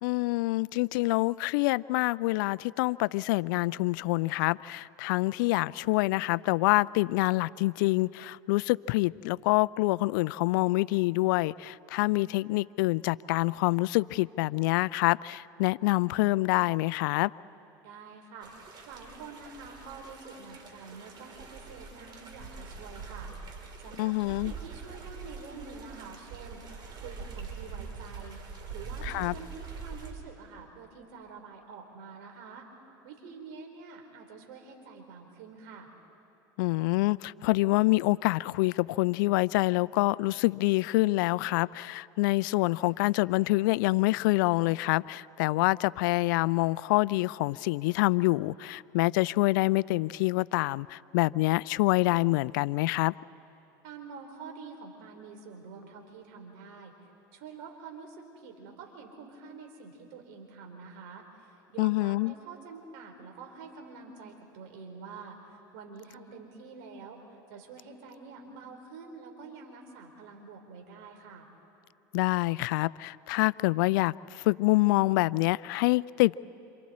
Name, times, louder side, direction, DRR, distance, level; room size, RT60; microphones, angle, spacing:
voice 1, 0.0-17.3 24.0-24.5 29.0-29.3 36.6-53.1 61.8-62.3 72.1-76.4, left 21 dB, 75° left, 0.4 m, -26 dB
voice 2, 17.8-18.5 18.9-23.3 23.8-26.6 27.0-28.4 28.7-32.7 33.0-35.9 53.8-56.9 57.3-71.5, right 5 dB, 70° right, 4.0 m, -47 dB
sound 1, 18.4-30.1, right 5 dB, 40° right, 3.7 m, -44 dB
28.0 x 27.0 x 4.3 m
hypercardioid pair, 95°, 11 cm